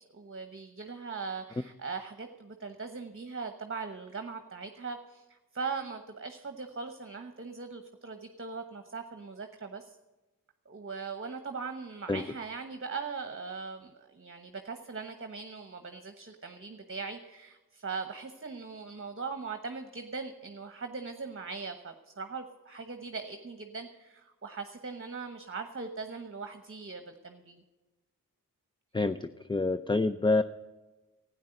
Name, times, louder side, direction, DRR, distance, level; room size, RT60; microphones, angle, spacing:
voice 1, 0.1-10.0 10.6-27.6, right 4 dB, 35° right, 7 dB, 1.1 m, -40 dB
voice 2, 28.9-30.4, left 3 dB, 15° left, 11 dB, 0.5 m, -27 dB
12.5 x 9.6 x 7.8 m, 1.2 s
cardioid pair, 55°, 35 cm